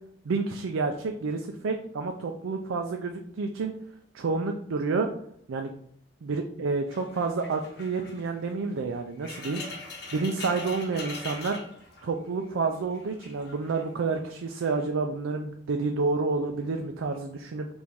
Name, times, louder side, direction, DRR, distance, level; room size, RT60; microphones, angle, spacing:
voice 1, 0.2-3.7 4.1-5.1 5.5-5.7 6.2-9.6 10.1-11.6 12.0-17.7, right 4 dB, 90° right, 4 dB, 0.4 m, -29 dB
sound 1, 6.9-12.5 12.7-13.9 14.5-14.9, left 3 dB, 55° left, 0.9 m, -42 dB
4.7 x 2.6 x 3.5 m, 0.67 s
head